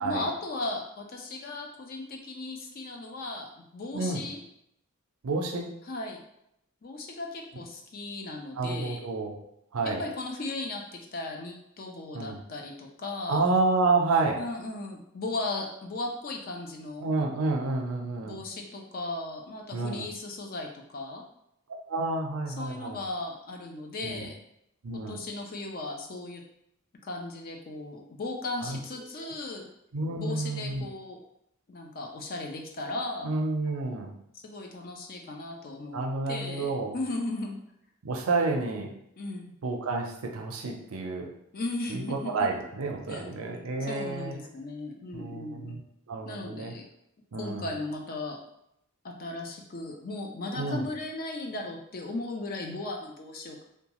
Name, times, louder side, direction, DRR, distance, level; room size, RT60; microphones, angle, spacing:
voice 1, 0.0-4.4 5.9-6.2 6.8-9.0 9.8-13.4 14.4-17.1 18.2-21.2 22.6-24.4 25.1-26.4 27.0-29.7 30.2-31.2 31.7-33.3 34.4-36.0 36.3-37.6 39.2-39.5 41.5-42.5 43.1-43.3 43.9-45.8 46.2-46.8 47.4-48.4 49.0-53.6, left 2 dB, 45° left, 1 dB, 0.5 m, -36 dB
voice 2, 3.9-4.2 5.2-5.7 8.6-9.4 9.7-10.0 12.1-12.4 13.3-14.4 17.0-18.4 19.7-20.1 21.9-23.0 24.0-24.3 24.8-25.2 28.6-28.8 29.2-29.3 29.9-30.9 33.2-34.1 35.9-37.0 38.0-38.9 39.6-41.3 41.9-44.3 45.1-45.8 46.1-46.7 47.3-47.7 50.6-50.9, right 3 dB, 80° right, 2 dB, 0.5 m, -29 dB
2.8 x 2.2 x 2.9 m, 0.76 s
head